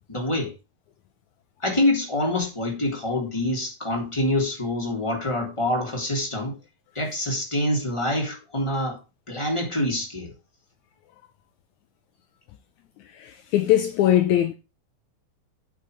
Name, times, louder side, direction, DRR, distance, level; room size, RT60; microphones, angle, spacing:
voice 1, 0.1-0.5 1.6-6.6 6.9-9.0 9.3-10.3, left 1 dB, 10° left, 3.2 m, -26 dB
voice 2, 13.1-14.5, left 12 dB, 75° left, 1.9 m, -21 dB
8.6 x 6.0 x 6.6 m
omnidirectional pair, 3.7 m